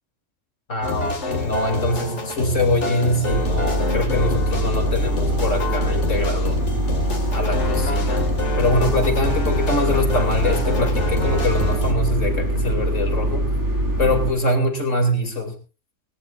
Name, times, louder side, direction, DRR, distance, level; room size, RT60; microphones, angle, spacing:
voice 1, 0.7-6.6 7.3-8.2 8.6-13.5 14.0-15.5, left 1 dB, 80° left, 4 dB, 3.2 m, -23 dB
sound 1, 0.8-11.9, left 2 dB, 65° left, 2.5 m, -27 dB
sound 2, 3.3-14.3, right 1 dB, 65° right, 4.0 m, -23 dB
19.0 x 18.5 x 2.5 m, 0.32 s
omnidirectional pair, 1.3 m